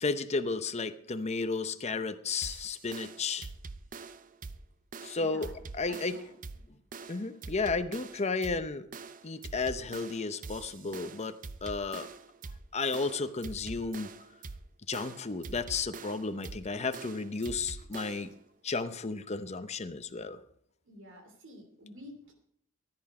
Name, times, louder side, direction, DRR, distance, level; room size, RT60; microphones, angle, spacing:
voice 1, 0.0-3.5 5.0-5.5 5.8-6.1 7.1-8.9 9.2-12.1 12.7-14.1 14.9-18.3 18.6-20.4, left 4 dB, 30° left, 10 dB, 0.7 m, -33 dB
sound 1, 2.4-18.4, right 4 dB, 40° right, 0.6 m, -45 dB
voice 2, 5.1-5.6 5.8-6.3 20.8-22.3, equal, 60° right, 4 dB, 2.9 m, -49 dB
16.5 x 10.5 x 4.9 m, 0.70 s
head